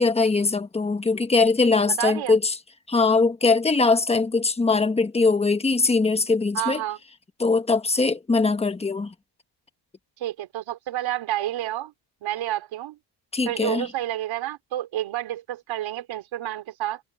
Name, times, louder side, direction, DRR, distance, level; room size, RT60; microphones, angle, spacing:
voice 1, 0.0-2.5 2.9-6.8 7.4-9.1 13.3-13.9, left 3 dB, 15° left, 1.2 m, -21 dB
voice 2, 2.0-2.4 6.5-7.0 10.2-11.9 12.2-13.0 13.4-17.0, right 13 dB, 70° right, 3.3 m, -29 dB
cardioid pair, 150°, 47 cm